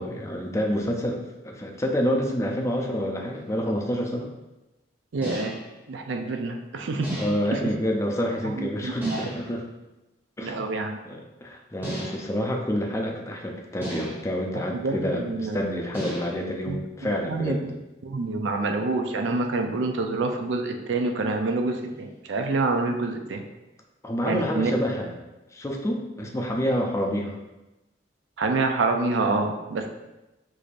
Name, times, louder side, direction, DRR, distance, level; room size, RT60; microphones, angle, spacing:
voice 1, 0.0-4.3 7.2-9.7 10.4-10.7 11.1-17.6 24.0-25.1 25.5-27.4, equal, 15° left, 1 dB, 0.4 m, -28 dB
sound 1, 3.3-3.5 5.2-5.8 7.0-7.6 9.0-9.6 11.8-12.4 13.8-14.4 15.9-16.5, equal, 10° right, 0.9 m, -35 dB
voice 2, 5.1-5.5 5.9-7.1 7.5-7.7 8.6-9.3 10.4-11.0 14.6-15.6 16.7-16.8 17.0-17.7 18.0-23.4 24.2-24.7 28.4-29.9, right 3 dB, 90° right, 5 dB, 0.4 m, -27 dB
4.7 x 2.6 x 2.5 m, 1.0 s
head